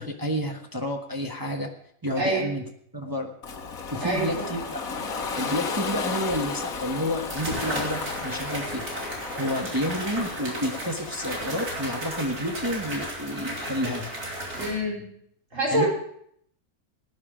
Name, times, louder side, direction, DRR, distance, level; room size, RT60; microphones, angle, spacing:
voice 1, 0.0-1.7 2.0-2.6 2.9-3.3 3.9-4.8 5.3-8.8 9.4-14.1 15.7-15.9, equal, 15° right, 2 dB, 1.1 m, -30 dB
voice 2, 2.2-2.5 4.0-4.5 14.5-15.1 15.5-15.9, right 1 dB, 60° right, -4 dB, 5.3 m, -26 dB
Ocean, 3.4-12.3, left 4 dB, 70° left, 1.8 m, -34 dB
sound 1, 6.3-6.4 7.3-14.7, right 1 dB, 85° right, 3.5 m, -34 dB
17.5 x 10.0 x 5.0 m, 0.67 s
omnidirectional pair, 1.6 m